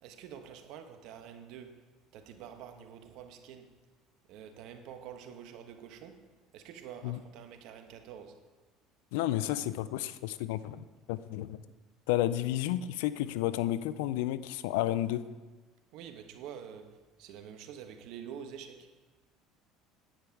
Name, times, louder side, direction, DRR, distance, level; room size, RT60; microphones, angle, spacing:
voice 1, 0.0-3.8 4.3-6.3 6.5-8.4 15.9-18.9, right 8 dB, 65° right, 1.2 m, -47 dB
voice 2, 9.1-11.6 12.1-15.2, left 13 dB, 80° left, 0.4 m, -31 dB
10.0 x 8.9 x 4.6 m
hypercardioid pair, 80°, 0 cm